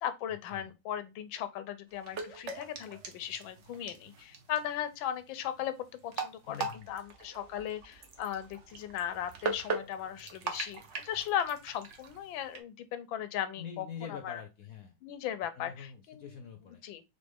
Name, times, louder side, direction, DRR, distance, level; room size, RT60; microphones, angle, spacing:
voice 1, 0.0-5.7 6.0-14.4 15.0-16.2 16.8-17.0, left 10 dB, 90° left, 1.4 m, -37 dB
sound 1, 1.9-12.6, right 4 dB, 50° right, 1.0 m, -41 dB
sound 2, 5.8-6.2 6.5-12.2, right 5 dB, 85° right, 1.8 m, -58 dB
voice 2, 6.5-6.9 13.6-14.9 15.5-16.8, left 7 dB, 65° left, 0.9 m, -45 dB
4.0 x 3.6 x 3.5 m
omnidirectional pair, 2.1 m